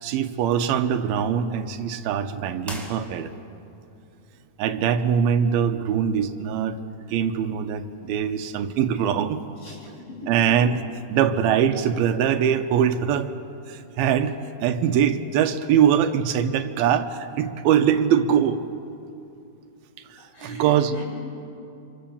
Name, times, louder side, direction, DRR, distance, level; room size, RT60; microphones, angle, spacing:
voice 1, 0.0-3.3 4.6-6.8 7.1-9.4 10.3-10.8 11.1-13.3 13.7-18.6 20.0-20.9, right 8 dB, 80° right, 9 dB, 2.8 m, -22 dB
sound 1, 2.6-3.6, equal, ahead, 3.2 m, -39 dB
voice 2, 9.6-10.5 20.2-21.0, equal, 75° left, -4 dB, 9.5 m, -39 dB
26.5 x 26.0 x 7.2 m, 2.7 s
omnidirectional pair, 4.3 m